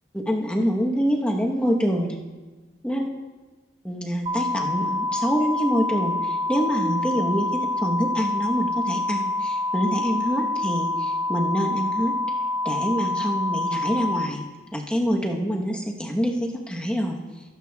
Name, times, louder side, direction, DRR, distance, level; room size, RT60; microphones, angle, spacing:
voice 1, 0.3-2.2 2.8-3.1 3.8-12.1 12.6-14.4 14.7-17.2, equal, 5° left, 0 dB, 1.0 m, -25 dB
sound 1, 4.3-14.3, left 2 dB, 30° right, 0.8 m, -26 dB
22.5 x 8.2 x 2.3 m, 1.3 s
head